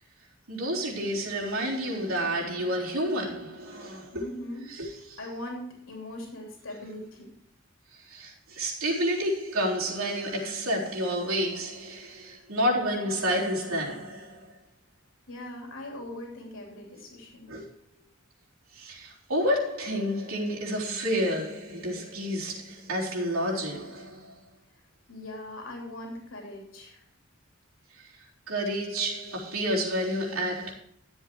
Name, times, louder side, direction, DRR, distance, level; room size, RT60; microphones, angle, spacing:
voice 1, 0.5-4.3 4.7-5.2 7.9-14.6 17.5-17.7 18.7-24.4 27.9-30.7, equal, 85° right, 3.8 m, -30 dB
voice 2, 4.1-4.7 5.2-7.3 15.3-17.5 25.1-27.0, left 1 dB, 75° left, 3.1 m, -40 dB
12.5 x 7.9 x 4.5 m
head